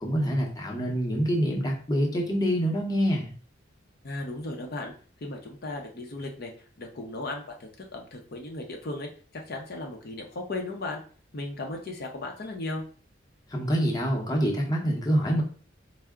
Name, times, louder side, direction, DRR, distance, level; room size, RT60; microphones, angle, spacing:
voice 1, 0.0-3.3 13.5-15.4, equal, 20° left, -1 dB, 0.8 m, -26 dB
voice 2, 4.0-4.9 5.2-6.5 6.8-11.0 11.3-12.8, left 2 dB, 55° left, 2 dB, 0.6 m, -36 dB
4.4 x 2.1 x 3.6 m, 0.42 s
head